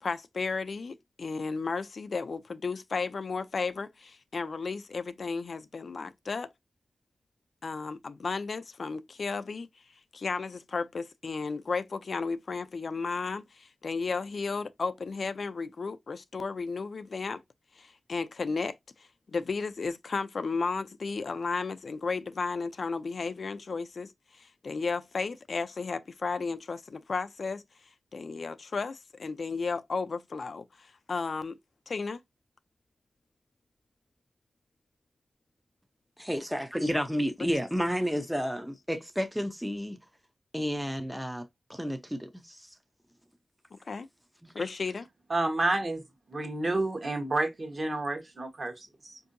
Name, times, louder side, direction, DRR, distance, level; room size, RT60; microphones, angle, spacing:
voice 1, 0.0-6.5 7.6-9.7 10.1-17.4 17.8-27.6 28.1-31.6 31.9-32.2 37.4-37.5 43.7-44.1 44.5-45.1, left 4 dB, 65° left, 0.3 m, -34 dB
voice 2, 36.2-40.0 40.5-41.4 41.7-42.7 44.4-44.5, equal, 5° right, 0.4 m, -31 dB
voice 3, 45.3-46.0 46.3-49.2, right 2 dB, 45° right, 1.0 m, -30 dB
4.4 x 2.6 x 2.5 m
wide cardioid pair, 90°, 0 cm